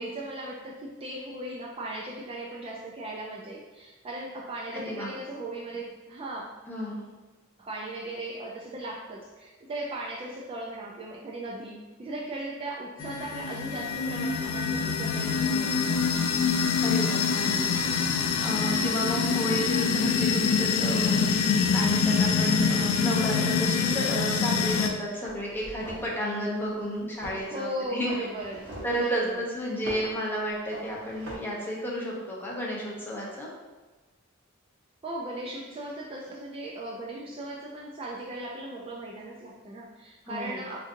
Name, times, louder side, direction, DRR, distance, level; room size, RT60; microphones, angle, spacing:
voice 1, 0.0-6.4 7.6-16.0 27.5-29.5 35.0-40.8, right 1 dB, 25° right, -3 dB, 0.3 m, -37 dB
voice 2, 4.8-5.1 6.7-7.0 16.8-28.1 28.8-33.5 40.3-40.6, equal, 10° left, -4 dB, 0.7 m, -32 dB
sound 1, 13.0-24.9, left 5 dB, 80° left, 0.4 m, -25 dB
sound 2, 25.2-26.2 27.2-27.5 28.1-29.0 29.8-30.1 30.7-31.4, right 1 dB, 65° right, 0.9 m, -41 dB
3.9 x 2.5 x 2.5 m, 1.2 s
head